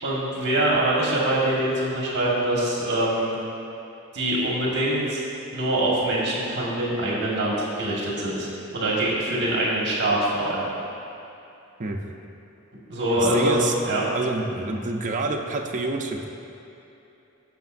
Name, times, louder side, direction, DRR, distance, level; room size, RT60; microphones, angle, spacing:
voice 1, 0.0-3.3 4.1-5.2 5.5-8.5 8.7-10.7 12.9-13.6 13.8-14.0, right 1 dB, 55° right, -5 dB, 1.6 m, -24 dB
voice 2, 13.1-13.7 14.1-16.2, right 3 dB, 40° right, 1 dB, 0.6 m, -27 dB
15.0 x 5.8 x 2.6 m, 2.9 s
head